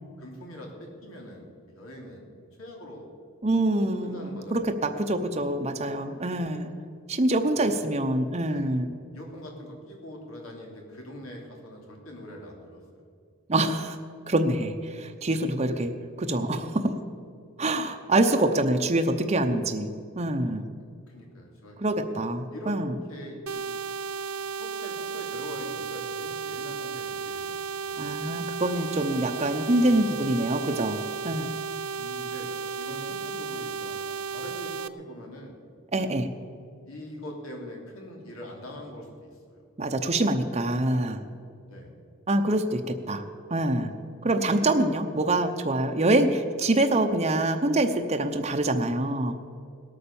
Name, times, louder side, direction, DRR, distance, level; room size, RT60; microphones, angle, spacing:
voice 1, 0.0-2.3 2.6-3.0 4.0-5.2 7.6-7.8 8.4-8.7 9.1-12.8 15.7-15.9 20.8-21.8 22.5-22.8 23.1-23.6 24.6-28.4 29.9-30.0 32.0-35.5 36.9-39.6 41.6-41.9, equal, 90° left, 0 dB, 3.3 m, -43 dB
voice 2, 3.4-6.7 7.1-8.9 13.5-14.0 14.3-17.0 17.6-19.9 20.2-20.6 21.8-22.9 28.0-31.0 31.2-31.5 35.9-36.3 39.8-41.2 42.3-43.2 43.5-43.9 44.2-49.4, right 1 dB, 30° right, 5 dB, 0.8 m, -25 dB
sound 1, 23.5-34.9, right 5 dB, 90° right, 0.6 m, -34 dB
18.5 x 8.8 x 7.0 m, 2.3 s
head